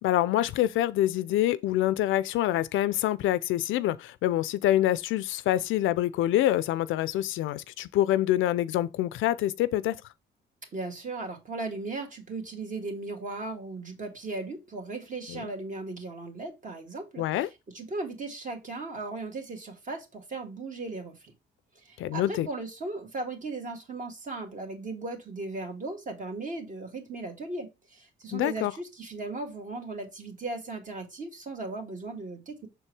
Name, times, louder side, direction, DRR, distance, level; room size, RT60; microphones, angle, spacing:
voice 1, 0.0-10.0 15.3-15.4 17.2-17.5 22.0-22.5 28.3-28.7, left 13 dB, 85° left, 0.5 m, -26 dB
voice 2, 10.7-21.3 21.8-32.7, right 3 dB, 40° right, 2.0 m, -37 dB
6.6 x 4.5 x 3.3 m
cardioid pair, 90°, 20 cm